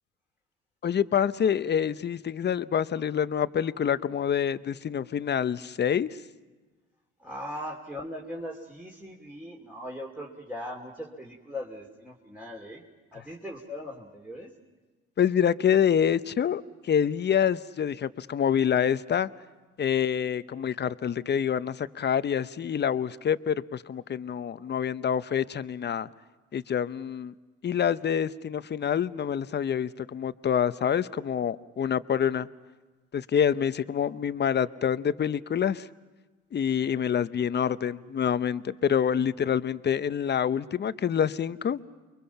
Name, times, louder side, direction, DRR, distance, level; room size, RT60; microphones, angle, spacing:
voice 1, 0.8-6.1 15.2-19.3 19.8-26.1 26.5-27.3 27.6-32.5 33.1-35.9 36.5-41.8, left 8 dB, 35° left, 15 dB, 0.7 m, -26 dB
voice 2, 7.2-12.8 13.1-14.5, left 1 dB, 5° right, -2 dB, 2.7 m, -39 dB
29.5 x 23.0 x 5.8 m, 1.3 s
supercardioid pair, 75°, 32 cm